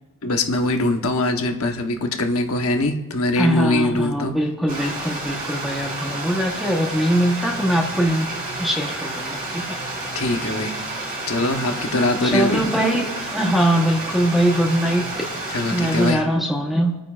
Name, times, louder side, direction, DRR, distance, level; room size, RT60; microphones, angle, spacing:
voice 1, 0.2-4.3 10.1-10.7 11.3-12.6 15.5-16.2, left 2 dB, 70° left, 4 dB, 1.1 m, -22 dB
voice 2, 3.3-8.3 8.6-9.8 12.2-15.3 15.7-17.0, equal, ahead, 0 dB, 1.0 m, -22 dB
Stream, 4.7-16.1, right 2 dB, 40° right, 3.3 m, -30 dB
27.0 x 9.1 x 2.5 m, 1.1 s
head